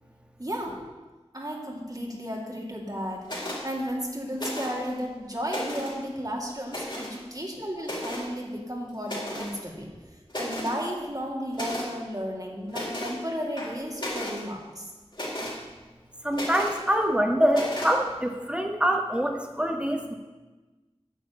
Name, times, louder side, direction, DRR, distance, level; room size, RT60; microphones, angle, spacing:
voice 1, 0.4-0.8 1.3-9.9 10.4-14.9, equal, 35° right, -1 dB, 2.3 m, -34 dB
sound 1, 3.2-3.6 4.3-4.9 5.3-6.0 6.7-7.2 7.8-8.3 9.0-9.5 9.9-10.0 10.3-10.8 11.5-11.9 12.7-13.2 13.6-14.4 15.1-15.6 16.3-16.8 17.5-17.9, left 1 dB, 45° left, 3.7 m, -34 dB
voice 2, 16.2-20.1, equal, 10° right, 3 dB, 1.6 m, -25 dB
9.6 x 6.3 x 8.8 m, 1.2 s
wide cardioid pair, 40°, 11 cm